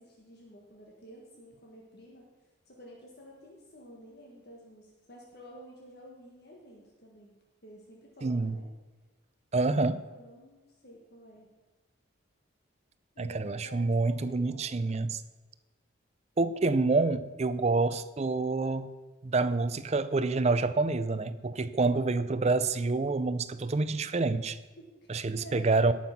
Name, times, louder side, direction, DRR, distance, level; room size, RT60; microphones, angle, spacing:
voice 1, 0.0-2.3 2.6-8.7 10.1-11.5 13.1-14.7 24.8-25.9, equal, 50° left, -2 dB, 1.6 m, -51 dB
voice 2, 8.2-8.6 9.5-10.0 13.2-15.2 16.4-18.9 19.2-24.6 25.1-25.9, right 3 dB, 30° right, 13 dB, 0.5 m, -27 dB
17.5 x 5.8 x 5.9 m, 1.2 s
head